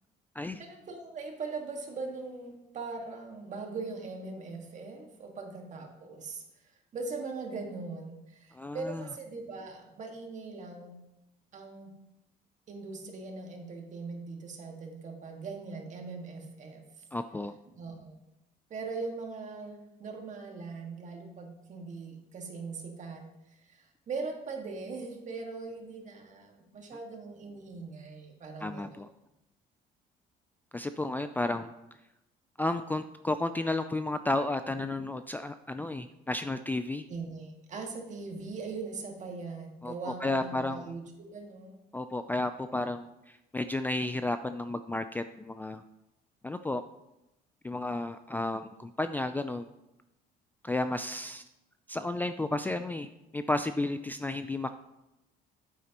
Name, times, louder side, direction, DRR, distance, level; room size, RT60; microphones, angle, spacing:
voice 1, 0.6-11.0 11.5-11.9 12.7-17.0 17.7-18.2 18.7-29.1 37.1-41.8, right 4 dB, 45° right, 2 dB, 1.8 m, -41 dB
voice 2, 8.5-9.0 17.1-17.5 28.6-29.1 30.7-31.7 32.6-37.0 39.8-40.9 41.9-45.8 46.4-46.8 47.6-49.7 50.6-51.4 51.9-53.1 53.3-54.7, left 2 dB, 10° left, 9 dB, 0.3 m, -32 dB
9.1 x 8.3 x 3.0 m, 0.91 s
cardioid pair, 110°, 17 cm